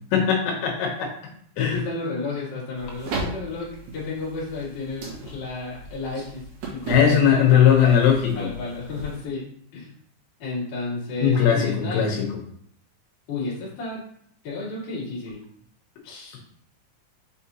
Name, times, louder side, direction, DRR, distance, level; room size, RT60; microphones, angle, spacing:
voice 1, 0.1-1.1 1.6-1.8 6.9-8.5 11.2-12.4, left 8 dB, 75° left, 0 dB, 3.1 m, -19 dB
voice 2, 1.6-8.0 8.3-9.4 9.7-9.9 10.4-12.1 13.3-14.0 14.4-15.4 16.0-16.4, left 3 dB, 40° left, -7 dB, 1.9 m, -32 dB
sound 1, 2.8-9.3, right 3 dB, 60° right, 2.2 m, -36 dB
6.6 x 5.1 x 2.8 m, 0.65 s
omnidirectional pair, 5.5 m